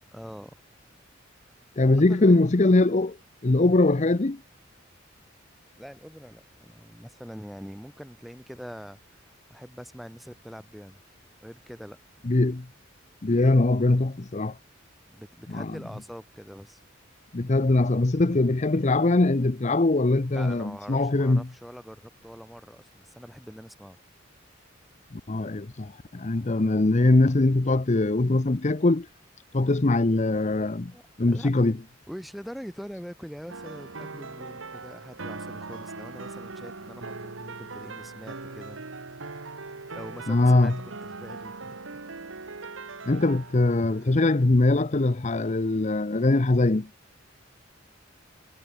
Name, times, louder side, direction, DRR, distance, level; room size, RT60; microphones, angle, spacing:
voice 1, 0.1-0.6 1.8-2.3 5.8-11.0 11.4-12.0 15.1-16.8 20.3-24.0 30.9-31.5 32.1-38.9 39.9-41.8 42.2-42.3, equal, ahead, 6.1 m, -43 dB
voice 2, 1.8-3.2 3.4-4.4 12.2-12.7 13.2-14.6 15.5-15.7 17.3-21.4 25.1-29.1 29.5-30.9 31.2-31.7 40.3-40.8 43.0-46.9, left 2 dB, 35° left, 0.7 m, -22 dB
sound 1, 33.5-44.5, right 3 dB, 80° right, 1.7 m, -40 dB
head